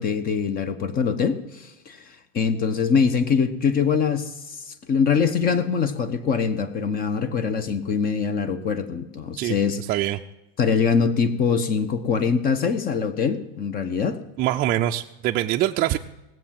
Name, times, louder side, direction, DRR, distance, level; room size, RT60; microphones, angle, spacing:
voice 1, 0.0-4.6 4.9-9.8 10.6-14.2, left 6 dB, 30° left, 12 dB, 1.0 m, -23 dB
voice 2, 9.4-10.2 14.4-16.0, right 13 dB, 30° right, 4 dB, 0.5 m, -24 dB
18.5 x 7.6 x 7.5 m, 0.99 s
supercardioid pair, 130°, 30 cm